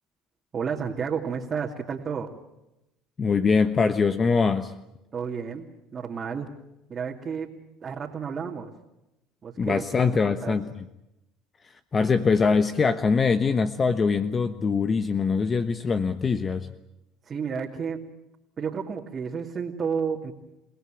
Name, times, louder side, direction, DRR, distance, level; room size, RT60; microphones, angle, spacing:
voice 1, 0.5-2.3 5.1-5.7 5.9-6.5 6.9-7.5 7.8-8.7 9.4-9.8 10.2-10.6 17.3-18.0 18.6-20.3, right 6 dB, 35° right, -1 dB, 2.6 m, -31 dB
voice 2, 3.2-4.7 9.6-10.7 11.9-16.7, left 5 dB, 30° left, 10 dB, 1.2 m, -23 dB
29.5 x 17.0 x 9.1 m, 0.92 s
supercardioid pair, 85°, 0 cm